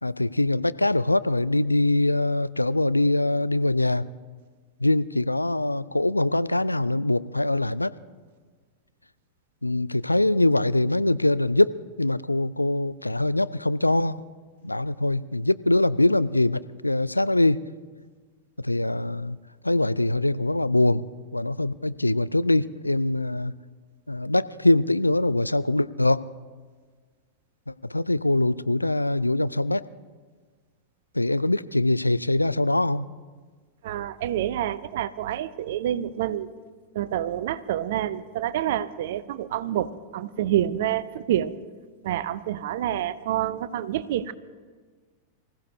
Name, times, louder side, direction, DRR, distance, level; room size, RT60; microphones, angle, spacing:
voice 1, 0.0-4.0 4.8-7.9 9.6-14.2 14.6-17.6 18.6-19.4 19.6-21.1 21.3-23.5 24.1-26.3 27.7-29.9 31.1-33.1, left 2 dB, 85° left, 16 dB, 0.3 m, -23 dB
voice 2, 33.8-36.5 36.9-41.6 42.0-44.3, right 11 dB, 55° right, 16 dB, 0.6 m, -28 dB
24.5 x 15.0 x 2.7 m, 1.5 s
figure-of-eight pair, 90°, 0 cm